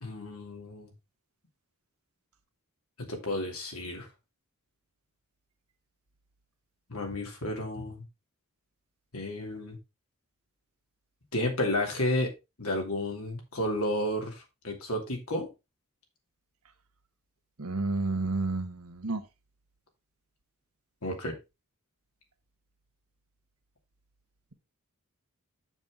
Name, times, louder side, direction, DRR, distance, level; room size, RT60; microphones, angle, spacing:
voice 1, 0.0-0.9 3.0-4.1 6.9-8.0 9.1-9.8 11.3-12.3 12.6-15.5 21.0-21.4, left 1 dB, 75° left, 2.7 m, -32 dB
voice 2, 17.6-19.2, right 2 dB, 80° right, 1.3 m, -30 dB
7.3 x 7.2 x 3.7 m
head